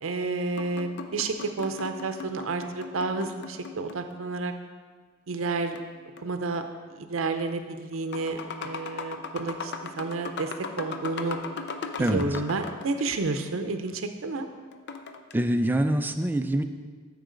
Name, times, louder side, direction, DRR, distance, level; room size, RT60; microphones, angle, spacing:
voice 1, 0.0-4.5 5.3-5.8 6.2-6.6 6.9-11.4 12.0-14.5, right 3 dB, 75° right, 7 dB, 0.6 m, -30 dB
sound 1, 0.6-4.3 5.7-6.6 7.4-7.5 7.9-13.0 14.7-15.4, left 4 dB, 55° left, 0.5 m, -38 dB
voice 2, 15.3-16.6, right 1 dB, 10° right, 7 dB, 0.3 m, -24 dB
13.0 x 4.7 x 3.8 m, 1.5 s
head